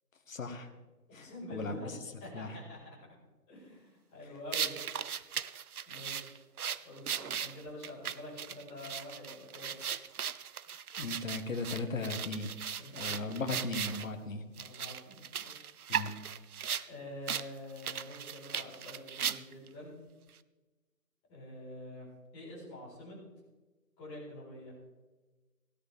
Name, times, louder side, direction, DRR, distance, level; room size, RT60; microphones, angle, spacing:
voice 1, 0.3-0.7 1.1-1.8 2.3-2.5 11.0-12.5 12.9-14.4 15.9-16.1, left 3 dB, 55° left, 6 dB, 1.6 m, -37 dB
voice 2, 1.2-1.9 2.2-3.0 3.5-4.8 5.9-6.5 6.8-9.7 12.8-13.2 14.5-15.7 16.9-20.0 21.3-22.1 22.3-23.2 24.0-24.7, left 1 dB, 10° left, -10 dB, 4.6 m, -47 dB
sound 1, 4.5-14.1 14.6-16.9 17.3-17.5 17.8-19.7, right 8 dB, 65° right, 0.6 m, -37 dB
16.5 x 13.0 x 3.5 m, 1.2 s
hypercardioid pair, 170°, 49 cm